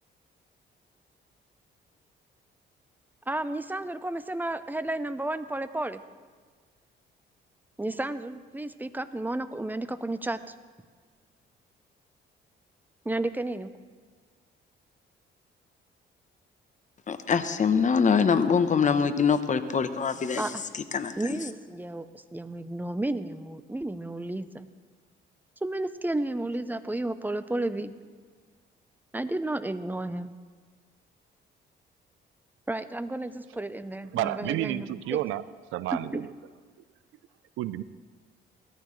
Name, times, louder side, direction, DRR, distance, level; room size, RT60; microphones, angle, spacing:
voice 1, 3.3-6.0 7.8-10.5 13.0-13.7 20.4-20.5 21.2-24.7 25.6-27.9 29.1-30.3 32.7-35.2 35.9-36.3, right 2 dB, 10° right, 12 dB, 0.6 m, -32 dB
voice 2, 17.1-21.5, left 6 dB, 40° left, 10 dB, 0.9 m, -24 dB
voice 3, 34.1-35.4 35.7-36.2 37.6-37.8, right 14 dB, 90° right, 16 dB, 0.5 m, -30 dB
18.5 x 14.0 x 3.2 m, 1.5 s
cardioid pair, 90°, 20 cm